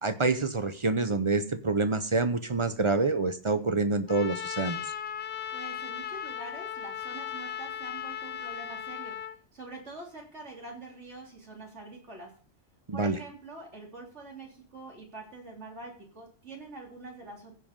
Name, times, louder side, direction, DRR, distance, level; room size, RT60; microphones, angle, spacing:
voice 1, 0.0-4.8 12.9-13.2, right 3 dB, 35° right, 11 dB, 0.5 m, -27 dB
Trumpet, 4.1-9.4, left 9 dB, 60° left, 0.9 m, -37 dB
voice 2, 5.5-9.2 9.5-12.3 12.9-17.5, right 3 dB, 65° right, -1 dB, 3.6 m, -45 dB
15.5 x 5.1 x 5.2 m, 0.42 s
omnidirectional pair, 1.3 m